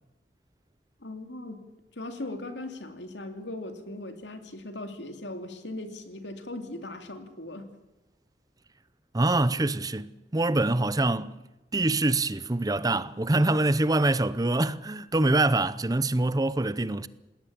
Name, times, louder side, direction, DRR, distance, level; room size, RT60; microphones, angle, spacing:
voice 1, 1.0-1.6 2.0-7.7, left 2 dB, 85° left, 2.8 m, -39 dB
voice 2, 9.1-11.4 11.7-17.1, right 2 dB, 20° right, 0.7 m, -25 dB
20.0 x 18.0 x 8.7 m
head